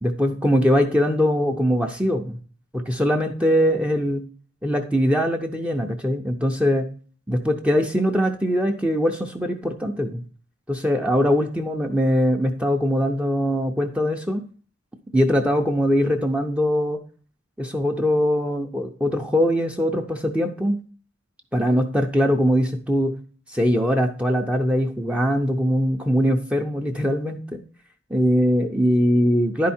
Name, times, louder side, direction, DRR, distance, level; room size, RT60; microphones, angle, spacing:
voice 1, 0.0-2.4 2.7-4.2 4.6-6.9 7.3-10.2 10.7-14.4 15.1-17.0 17.6-20.8 21.5-23.1 23.5-27.6 28.1-29.7, equal, 5° right, 3 dB, 0.6 m, -21 dB
10.5 x 4.7 x 4.3 m, 0.42 s
head